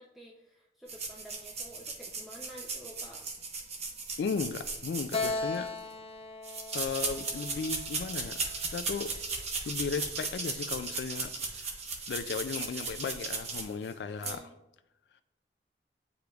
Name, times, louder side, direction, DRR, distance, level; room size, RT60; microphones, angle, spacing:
voice 1, 0.0-3.2 14.2-14.6, equal, ahead, -3 dB, 0.5 m, -50 dB
sound 1, 0.9-5.8 6.4-13.9 14.2-14.4, right 4 dB, 40° right, 0.9 m, -36 dB
voice 2, 4.2-5.7 6.7-9.1 9.7-11.7 12.1-14.5, left 5 dB, 65° left, 10 dB, 0.3 m, -36 dB
Keyboard (musical), 5.1-8.6, left 3 dB, 35° left, 0.7 m, -37 dB
9.0 x 5.0 x 2.3 m, 0.93 s
head